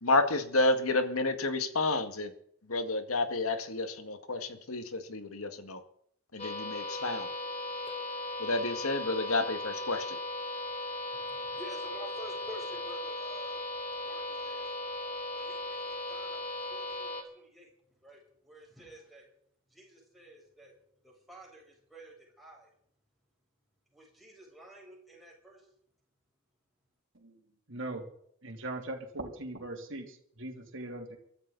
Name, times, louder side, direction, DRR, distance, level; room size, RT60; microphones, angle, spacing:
voice 1, 0.0-2.3 2.7-5.8 6.3-7.3 8.4-10.2, left 2 dB, 85° left, 8 dB, 1.9 m, -30 dB
sound 1, 6.4-17.2, left 2 dB, 30° left, 3.3 m, -37 dB
voice 2, 11.1-13.6 14.0-14.8 15.3-19.3 19.7-20.8 21.0-22.7 23.9-25.7, right 1 dB, ahead, -4 dB, 7.9 m, -51 dB
voice 3, 27.7-28.1 28.4-31.2, right 2 dB, 60° right, 2 dB, 3.2 m, -40 dB
23.5 x 13.0 x 4.1 m, 0.66 s
head